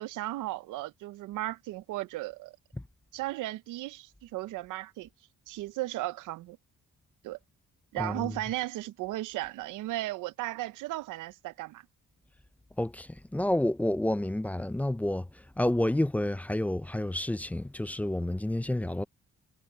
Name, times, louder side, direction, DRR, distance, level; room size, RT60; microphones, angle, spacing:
voice 1, 0.0-2.6 3.1-5.1 5.5-6.6 7.2-7.4 7.9-11.9, right 16 dB, 90° right, 0.7 m, -35 dB
voice 2, 8.0-8.3 12.8-15.3 15.6-19.0, left 1 dB, 5° left, 0.4 m, -29 dB
cardioid pair, 90°, 30 cm